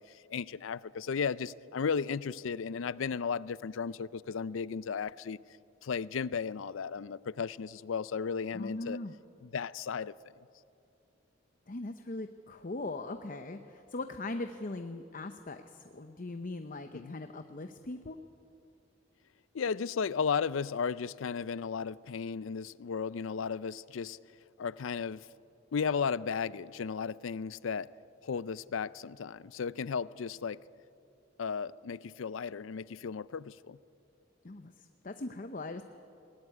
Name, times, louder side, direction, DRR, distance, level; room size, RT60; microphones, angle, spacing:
voice 1, 0.0-5.4 5.8-9.0 9.4-10.1 16.9-17.1 19.5-24.2 24.6-25.3 25.7-27.9 28.2-30.6 31.4-33.8, left 6 dB, 80° left, 0.5 m, -35 dB
voice 2, 8.5-9.1 11.7-18.2 34.4-35.8, left 2 dB, 45° left, 0.7 m, -40 dB
19.5 x 18.5 x 9.7 m
head